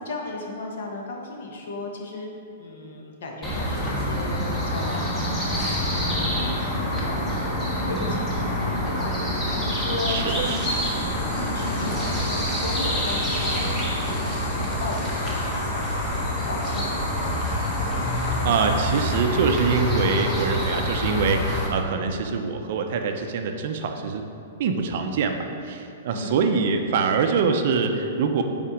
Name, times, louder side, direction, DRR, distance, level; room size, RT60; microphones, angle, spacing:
voice 1, 0.0-2.3 2.6-15.7 16.1-17.0 26.1-26.4, left 2 dB, 65° left, 0 dB, 1.1 m, -35 dB
sound 1, 3.4-21.7, equal, 10° left, 0.9 m, -26 dB
voice 2, 10.1-10.6 18.4-24.2 24.6-28.4, right 5 dB, 45° right, 5 dB, 0.5 m, -24 dB
sound 2, 10.3-19.2, left 3 dB, 40° left, 0.9 m, -44 dB
5.6 x 4.3 x 5.0 m, 2.5 s
hypercardioid pair, 170°, 0 cm